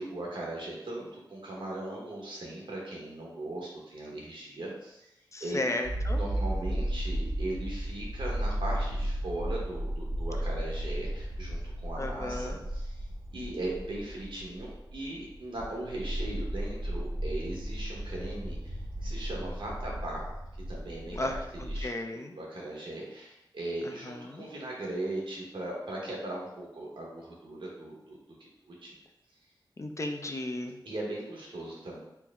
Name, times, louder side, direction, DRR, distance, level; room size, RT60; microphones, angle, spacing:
voice 1, 0.0-5.1 5.4-5.6 6.1-13.0 13.3-20.2 20.7-21.9 22.3-28.2 28.6-28.9 30.8-32.0, right 1 dB, 85° right, -3 dB, 1.1 m, -38 dB
voice 2, 5.3-6.2 12.0-12.6 21.1-21.4 21.8-22.3 24.0-24.4 29.8-30.8, left 2 dB, 35° left, 4 dB, 0.5 m, -34 dB
sound 1, 5.8-21.8, right 1 dB, 35° right, 0.7 m, -34 dB
4.5 x 2.1 x 3.5 m, 0.89 s
wide cardioid pair, 60°, 8 cm